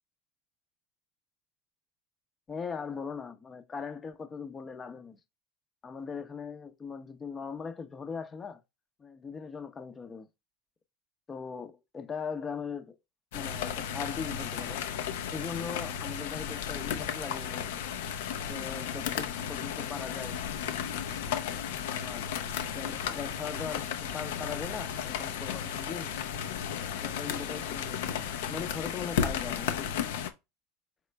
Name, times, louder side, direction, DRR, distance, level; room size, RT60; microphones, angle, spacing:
voice 1, 2.5-5.2 5.8-8.6 9.0-10.3 11.3-13.0 13.3-14.8 15.3-17.8 18.5-20.4 21.9-22.3 22.7-26.1 27.0-29.9, left 5 dB, 25° left, 0.6 m, -40 dB
sound 1, 13.3-30.3, left 8 dB, 75° left, 0.5 m, -34 dB
3.7 x 3.2 x 3.3 m
hypercardioid pair, 95°, 0 cm